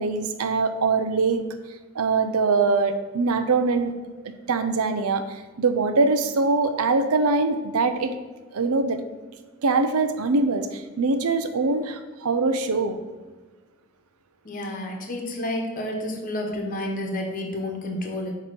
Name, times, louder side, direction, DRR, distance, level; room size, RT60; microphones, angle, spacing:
voice 1, 0.0-1.4 1.9-3.9 4.5-8.1 8.5-9.0 9.6-13.0, right 3 dB, 85° right, 8 dB, 0.6 m, -23 dB
voice 2, 14.4-18.3, left 1 dB, 40° left, 1 dB, 1.1 m, -30 dB
8.5 x 3.1 x 5.2 m, 1.3 s
head